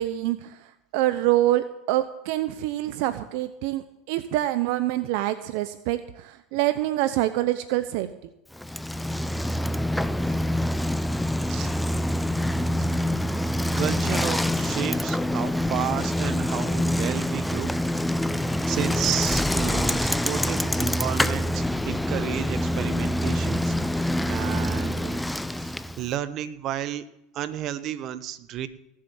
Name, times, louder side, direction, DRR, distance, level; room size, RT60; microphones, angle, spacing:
voice 1, 0.0-8.1, right 15 dB, 65° right, 11 dB, 0.8 m, -26 dB
Bicycle, 8.5-26.1, left 1 dB, 5° left, 0.6 m, -26 dB
voice 2, 13.8-17.7 18.7-25.2 25.5-27.0 27.3-28.7, right 11 dB, 50° right, 13 dB, 1.1 m, -32 dB
18.5 x 7.6 x 7.1 m, 0.88 s
hypercardioid pair, 100°, 0 cm